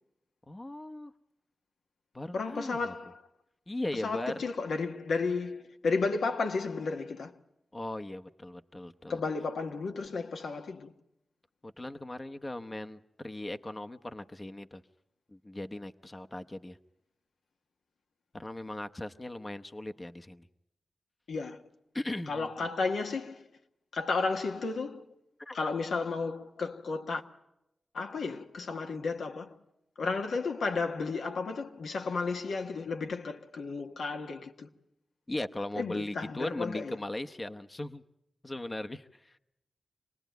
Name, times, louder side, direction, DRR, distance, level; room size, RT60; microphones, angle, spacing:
voice 1, 0.5-1.1 2.1-2.9 3.7-4.3 7.7-9.2 11.6-14.8 15.3-16.8 18.3-20.5 21.9-22.5 25.4-25.6 35.3-38.0 38.4-39.4, left 1 dB, 25° left, 0.8 m, -38 dB
voice 2, 2.3-3.2 3.9-7.3 9.1-10.9 21.3-21.6 22.3-23.5 23.9-25.1 25.5-27.2 27.9-29.6 30.0-34.7 35.7-37.0, left 4 dB, 85° left, 1.4 m, -33 dB
26.5 x 19.0 x 9.2 m
wide cardioid pair, 90°, 0 cm